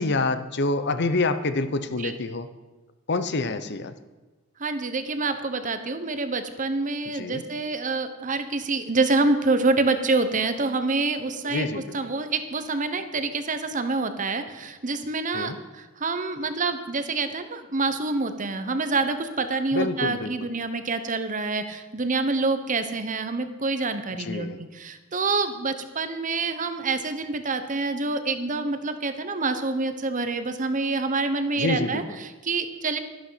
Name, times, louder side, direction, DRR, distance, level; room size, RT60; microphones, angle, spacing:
voice 1, 0.0-2.5 3.1-3.9 7.1-7.4 11.4-11.9 15.3-15.6 19.7-20.5 24.2-24.6 31.6-32.2, left 2 dB, 55° left, 11 dB, 0.9 m, -27 dB
voice 2, 4.6-33.0, right 3 dB, 40° right, 9 dB, 1.1 m, -27 dB
13.0 x 11.5 x 5.8 m, 1.2 s
head